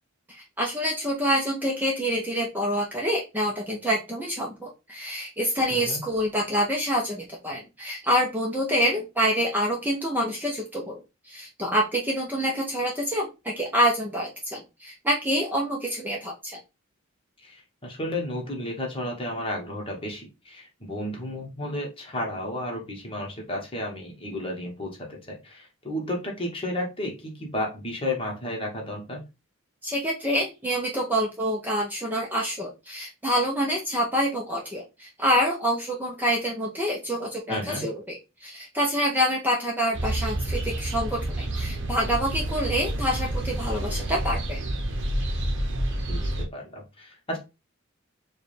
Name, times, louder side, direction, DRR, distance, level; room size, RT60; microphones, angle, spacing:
voice 1, 0.3-11.0 11.2-16.6 29.8-44.6, equal, 10° right, -2 dB, 0.6 m, -27 dB
voice 2, 17.4-29.2 37.5-37.8 45.9-47.4, left 1 dB, 25° left, 0 dB, 1.1 m, -33 dB
sound 1, 39.9-46.4, right 1 dB, 60° right, 0.8 m, -29 dB
4.6 x 2.3 x 3.2 m, 0.26 s
head